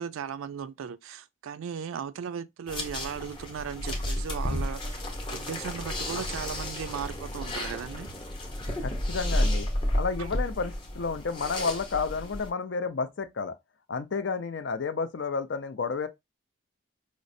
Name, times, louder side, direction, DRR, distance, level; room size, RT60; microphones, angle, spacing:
voice 1, 0.0-8.1 10.2-10.3, right 7 dB, 75° right, 0.3 m, -37 dB
sound 1, 2.7-12.5, left 1 dB, 25° left, 0.7 m, -32 dB
voice 2, 8.8-9.7 9.9-13.5 13.9-16.1, left 5 dB, 55° left, 0.4 m, -31 dB
5.0 x 2.0 x 2.5 m
head